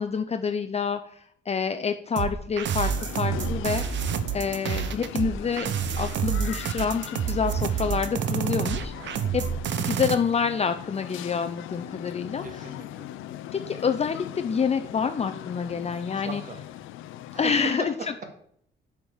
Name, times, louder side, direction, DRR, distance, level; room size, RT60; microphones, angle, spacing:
voice 1, 0.0-2.9 3.2-3.8 4.3-5.7 6.0-9.4 9.8-12.4 13.5-16.4 17.4-17.9, left 6 dB, 30° left, 7 dB, 0.6 m, -27 dB
sound 1, 2.2-10.1, right 8 dB, 65° right, 0.8 m, -28 dB
sound 2, 2.8-17.7, left 13 dB, 85° left, 0.6 m, -40 dB
voice 2, 12.4-13.1 16.1-16.6 17.3-18.3, right 3 dB, 40° right, 5 dB, 2.0 m, -38 dB
6.9 x 5.3 x 6.4 m, 0.66 s
cardioid pair, 90°, 20 cm